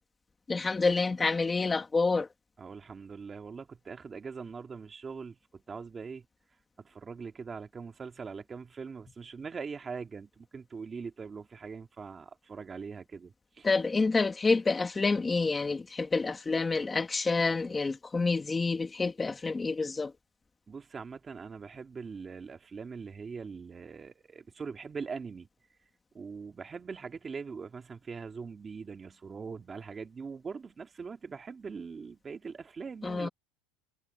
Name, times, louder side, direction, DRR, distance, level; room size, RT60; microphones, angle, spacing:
voice 1, 0.5-2.3 13.6-20.1 33.0-33.3, left 3 dB, 10° left, 1.9 m, -28 dB
voice 2, 2.6-6.2 6.8-13.7 20.7-25.5 26.1-33.3, right 5 dB, 15° right, 2.6 m, -42 dB
supercardioid pair, 155°, 0 cm